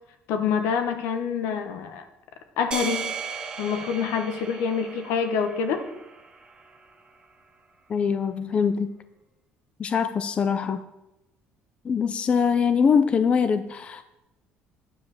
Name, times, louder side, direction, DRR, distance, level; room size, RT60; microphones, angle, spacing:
voice 1, 0.3-2.0 2.6-3.2 3.6-5.8, left 6 dB, 85° left, 7 dB, 1.2 m, -26 dB
sound 1, 2.7-7.1, right 5 dB, 20° right, 1.2 m, -36 dB
voice 2, 7.9-8.9 9.8-10.8 11.8-14.0, left 6 dB, 30° left, 11 dB, 0.4 m, -23 dB
9.6 x 5.1 x 7.3 m, 0.92 s
cardioid pair, 150°, 4 cm